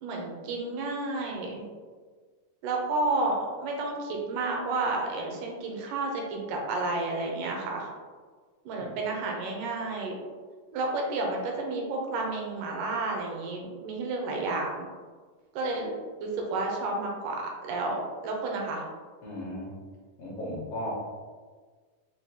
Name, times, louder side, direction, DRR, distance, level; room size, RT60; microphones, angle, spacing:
voice 1, 0.0-1.6 2.6-7.9 8.7-10.2 10.7-14.9 15.5-15.9 16.2-18.8, right 2 dB, 80° right, 0 dB, 2.1 m, -31 dB
voice 2, 19.2-19.7 20.2-20.9, left 1 dB, 75° left, -5 dB, 1.4 m, -36 dB
6.2 x 2.2 x 2.8 m, 1.5 s
omnidirectional pair, 3.9 m